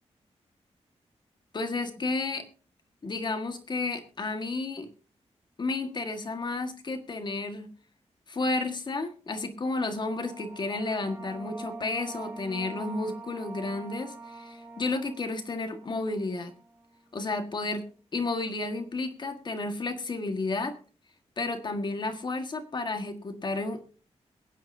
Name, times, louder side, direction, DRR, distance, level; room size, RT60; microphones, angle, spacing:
voice 1, 1.5-2.4 3.0-4.9 5.6-7.7 8.3-16.5 17.1-17.9 18.1-20.7 21.4-23.9, left 3 dB, 40° left, 6 dB, 1.6 m, -32 dB
sound 1, 9.7-17.0, right 3 dB, 20° right, 3.6 m, -45 dB
23.0 x 9.2 x 2.7 m, 0.38 s
wide cardioid pair, 150°, 12 cm